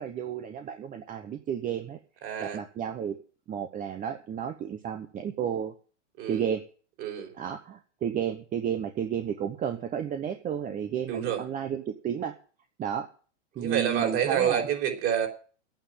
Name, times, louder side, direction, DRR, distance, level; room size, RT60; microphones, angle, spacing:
voice 1, 0.0-2.0 2.4-3.2 3.5-5.7 6.3-6.6 7.3-12.3 12.8-13.1 13.6-14.7, right 8 dB, 20° right, 6 dB, 0.9 m, -32 dB
voice 2, 2.2-2.6 6.2-6.4 7.0-7.3 11.1-11.4 13.6-15.3, right 9 dB, 40° right, 3 dB, 3.8 m, -28 dB
9.5 x 9.0 x 9.1 m, 0.40 s
hypercardioid pair, 130°, 36 cm